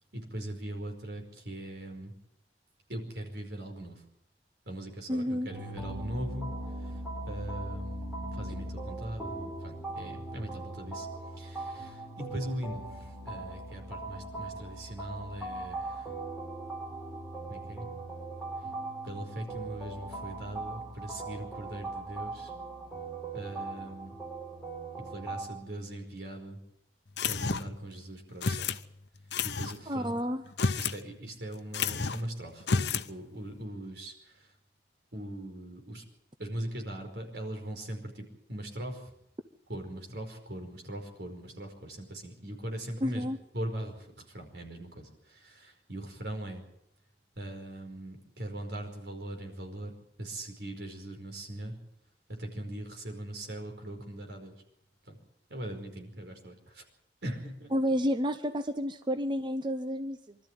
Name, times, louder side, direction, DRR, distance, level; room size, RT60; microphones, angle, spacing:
voice 1, 0.1-2.2 2.9-4.0 4.7-6.5 6.8-6.9 7.3-11.1 11.3-16.1 17.5-17.9 19.0-22.5 23.3-24.1 25.0-26.6 27.2-28.7 29.4-30.2 30.8-34.5 35.1-36.0 36.4-39.1 39.7-43.3 43.5-46.6 47.4-51.8 52.3-54.5 55.1-55.2 55.5-56.8 57.2-57.7, right 1 dB, 75° right, 4 dB, 5.1 m, -40 dB
voice 2, 5.1-5.5 8.6-8.7 29.9-30.4 43.0-43.4 57.7-60.4, equal, 25° right, 9 dB, 0.8 m, -30 dB
sound 1, 5.5-25.5, right 2 dB, 5° right, 5.0 m, -39 dB
sound 2, 27.2-27.8 28.4-28.8 29.3-29.8 30.5-31.0 31.3-31.4 31.7-32.3 32.6-33.1, left 5 dB, 75° left, 0.9 m, -30 dB
24.5 x 13.0 x 9.3 m, 0.77 s
head